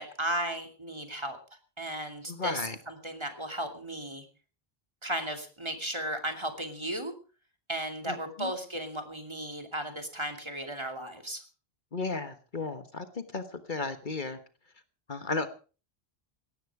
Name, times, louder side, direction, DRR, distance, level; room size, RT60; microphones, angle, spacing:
voice 1, 0.0-1.4 1.8-2.6 2.9-4.3 5.0-7.1 7.7-11.4, right 1 dB, 25° right, 5 dB, 2.8 m, -35 dB
voice 2, 2.3-2.8 8.1-8.5 11.9-14.4 15.1-15.5, left 3 dB, 50° left, 10 dB, 1.5 m, -34 dB
18.0 x 13.5 x 4.9 m, 0.37 s
omnidirectional pair, 1.0 m